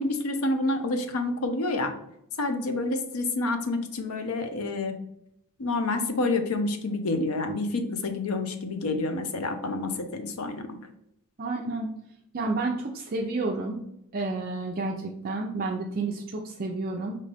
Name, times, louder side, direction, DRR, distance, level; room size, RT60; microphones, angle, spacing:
voice 1, 0.0-1.9 2.4-4.9 5.6-10.7, left 2 dB, 70° left, 7 dB, 0.6 m, -28 dB
voice 2, 11.4-11.9 12.3-13.8 14.1-17.2, right 3 dB, 40° right, 0 dB, 0.4 m, -30 dB
5.1 x 2.7 x 3.3 m, 0.77 s
head